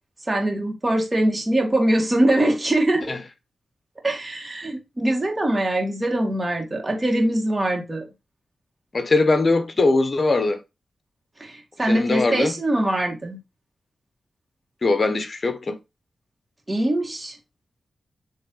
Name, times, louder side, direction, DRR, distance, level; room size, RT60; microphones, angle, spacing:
voice 1, 0.3-3.1 4.0-8.1 11.4-13.4 16.7-17.3, right 1 dB, 25° right, 2.1 m, -22 dB
voice 2, 8.9-10.6 11.9-12.5 14.8-15.8, left 3 dB, 45° left, 1.1 m, -21 dB
7.4 x 3.4 x 3.9 m
cardioid pair, 60°, 0 cm